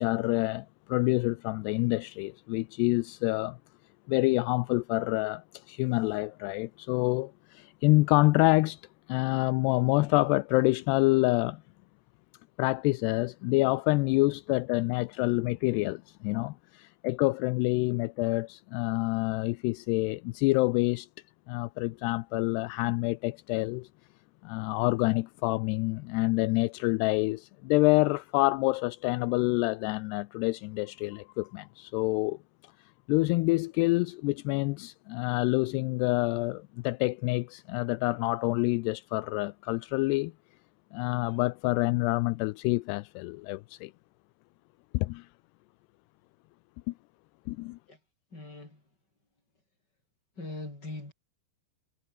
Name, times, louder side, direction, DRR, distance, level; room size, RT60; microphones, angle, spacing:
voice 1, 0.0-3.6 4.1-8.8 9.1-11.6 12.6-21.1 21.5-23.9 24.4-32.4 33.1-40.3 40.9-43.9 44.9-45.3 46.9-47.0 47.5-47.8, left 23 dB, 85° left, 2.5 m, -27 dB
voice 2, 48.3-48.8 50.4-51.1, left 2 dB, 20° left, 8.2 m, -40 dB
omnidirectional pair, 5.1 m